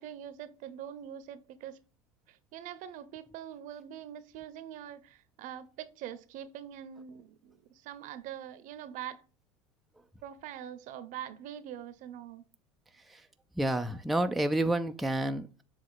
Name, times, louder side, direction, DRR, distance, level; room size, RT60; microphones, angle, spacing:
voice 1, 0.0-1.8 2.5-7.5 7.8-9.2 10.2-12.4, right 10 dB, 55° right, 0.9 m, -43 dB
voice 2, 13.6-15.6, right 1 dB, ahead, 0.5 m, -29 dB
7.3 x 2.9 x 5.8 m
hypercardioid pair, 95°, 16 cm